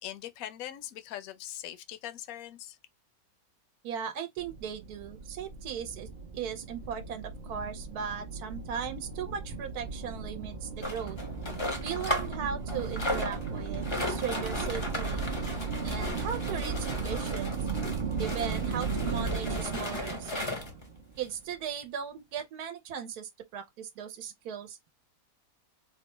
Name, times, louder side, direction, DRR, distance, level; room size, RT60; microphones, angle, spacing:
voice 1, 0.0-2.8, left 12 dB, 70° left, 1.0 m, -41 dB
voice 2, 3.8-11.2 11.8-15.2 15.8-17.6 18.2-20.3 21.2-24.8, right 8 dB, 85° right, 1.2 m, -37 dB
sound 1, 4.4-21.4, right 4 dB, 50° right, 0.5 m, -36 dB
sound 2, 10.8-12.4 12.7-20.8 21.5-21.6 21.8-21.9 22.4-22.5, left 1 dB, 30° left, 0.6 m, -36 dB
4.5 x 2.1 x 3.0 m
omnidirectional pair, 1.6 m